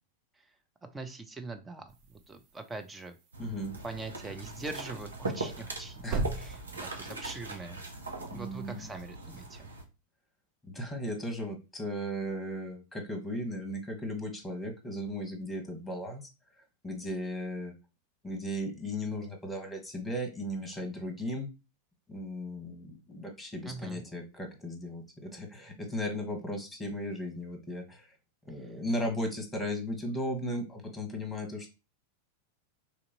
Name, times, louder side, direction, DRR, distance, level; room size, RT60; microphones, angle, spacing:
voice 1, 0.9-3.2 3.8-6.1 6.4-7.8 8.3-9.7 23.6-24.0, right 3 dB, 10° right, 6 dB, 0.7 m, -42 dB
sound 1, 1.9-9.2, right 3 dB, 40° right, 0.8 m, -42 dB
sound 2, 3.3-9.8, right 3 dB, 75° right, 0.8 m, -40 dB
voice 2, 3.4-3.7 6.0-6.2 8.3-8.9 10.6-16.3 16.8-17.7 18.2-21.5 22.1-28.1 28.4-31.7, equal, 5° left, 4 dB, 1.4 m, -36 dB
3.3 x 2.8 x 3.9 m, 0.29 s
figure-of-eight pair, 90°, 0 cm